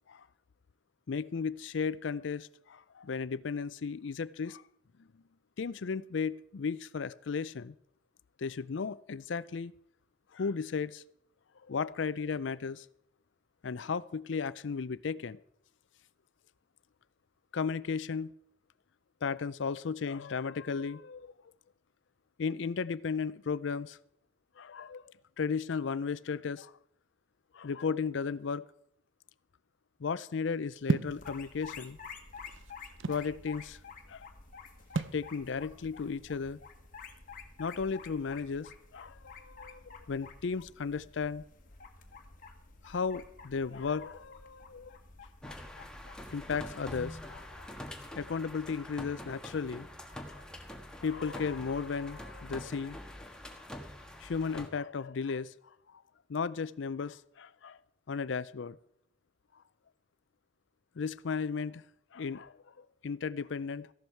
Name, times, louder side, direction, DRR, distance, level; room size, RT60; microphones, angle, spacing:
voice 1, 1.1-4.6 5.0-5.1 5.6-7.7 8.4-9.7 10.3-11.0 11.7-12.9 13.6-15.4 17.5-18.3 19.2-21.3 22.4-24.0 24.6-25.0 25.4-26.7 27.5-28.6 30.0-32.0 33.1-33.8 34.1-34.3 35.1-36.6 37.6-41.4 42.8-45.0 46.3-47.5 48.2-50.4 51.0-53.0 53.5-53.6 54.2-55.5 55.9-56.0 56.3-57.8 58.1-58.8 61.0-61.8 62.1-63.9, left 5 dB, 70° left, 18 dB, 0.5 m, -35 dB
sound 1, 30.9-31.2 32.1-33.3 34.9-35.2, right 3 dB, 75° right, 0.6 m, -32 dB
sound 2, 31.1-47.9, left 5 dB, 45° left, 1.5 m, -51 dB
sound 3, 45.4-54.7, left 1 dB, 5° left, 1.4 m, -45 dB
15.0 x 12.0 x 4.5 m, 0.72 s
head